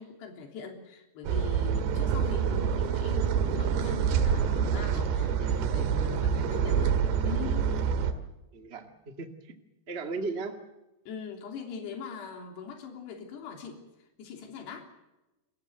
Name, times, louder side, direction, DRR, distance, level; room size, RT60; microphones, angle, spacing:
voice 1, 0.0-7.7 11.1-13.8 14.2-14.9, left 5 dB, 70° left, 3 dB, 5.4 m, -41 dB
sound 1, 1.2-8.1, right 7 dB, 80° right, 3.8 m, -27 dB
voice 2, 8.5-9.5 9.9-10.5, right 3 dB, 35° right, 6 dB, 1.0 m, -36 dB
28.5 x 14.5 x 8.1 m, 1.0 s
omnidirectional pair, 5.0 m